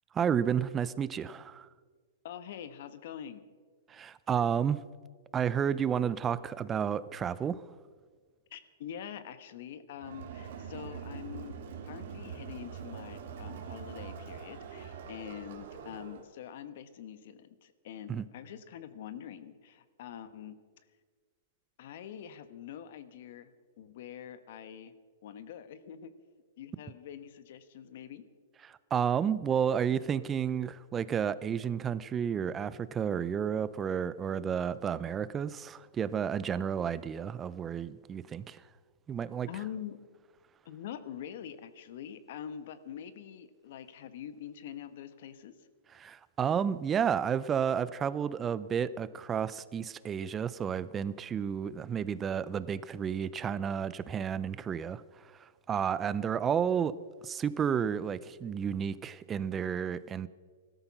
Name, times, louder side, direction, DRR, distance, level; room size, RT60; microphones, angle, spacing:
voice 1, 0.1-1.7 3.9-4.8 5.3-7.7 18.1-18.3 28.6-38.7 39.1-39.5 45.9-56.9 57.2-60.3, right 8 dB, 15° right, 0.5 m, -31 dB
voice 2, 2.2-3.4 8.5-11.6 11.8-20.6 21.8-23.5 23.8-24.9 25.2-26.1 26.6-28.2 39.4-40.0 40.6-45.7, left 9 dB, 55° left, 1.1 m, -45 dB
Crowd, 10.0-16.3, right 6 dB, 60° right, 2.4 m, -43 dB
16.0 x 13.0 x 5.9 m
hypercardioid pair, 150°, 0 cm